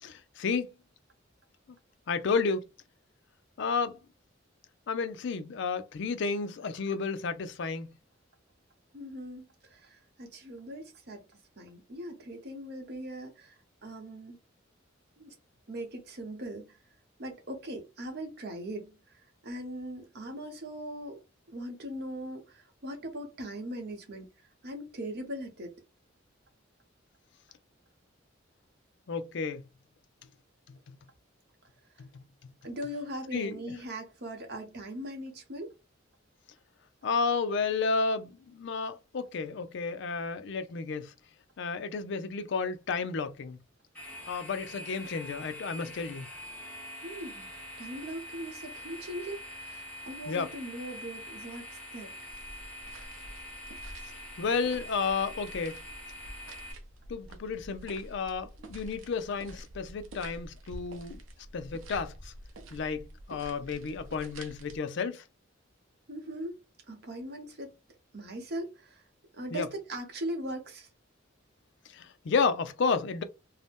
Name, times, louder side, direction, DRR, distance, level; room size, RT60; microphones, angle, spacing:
voice 1, 0.0-0.7 2.1-2.7 3.6-4.0 4.9-7.9 29.1-29.6 30.7-31.0 32.0-32.2 33.3-33.7 37.0-41.1 41.6-43.6 44.3-46.3 50.3-50.5 54.4-55.8 57.1-61.2 61.5-62.3 62.7-65.2 69.5-69.7 71.9-73.2, left 5 dB, 65° left, 0.4 m, -32 dB
voice 2, 8.9-13.5 13.8-14.4 15.2-15.3 15.7-16.8 17.2-21.2 21.5-24.3 24.6-25.7 32.6-35.7 47.0-47.5 47.8-52.1 66.1-67.8 68.1-69.1 69.3-70.9, right 1 dB, 55° right, 0.9 m, -40 dB
sound 1, 43.9-56.7, equal, 5° left, 1.0 m, -45 dB
sound 2, 52.3-64.8, right 1 dB, 85° right, 0.6 m, -48 dB
2.7 x 2.0 x 3.4 m
head